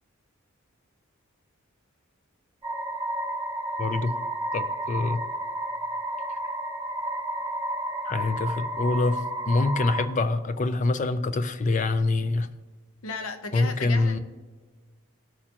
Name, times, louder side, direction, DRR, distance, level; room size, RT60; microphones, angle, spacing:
sound 1, 2.6-10.1, right 1 dB, 20° right, 0.8 m, -31 dB
voice 1, 3.8-4.1 4.5-5.2 8.1-12.5 13.5-14.2, left 2 dB, 35° left, 12 dB, 0.5 m, -25 dB
voice 2, 13.0-14.2, left 4 dB, 80° left, 8 dB, 0.9 m, -34 dB
17.5 x 6.4 x 2.9 m, 1.4 s
head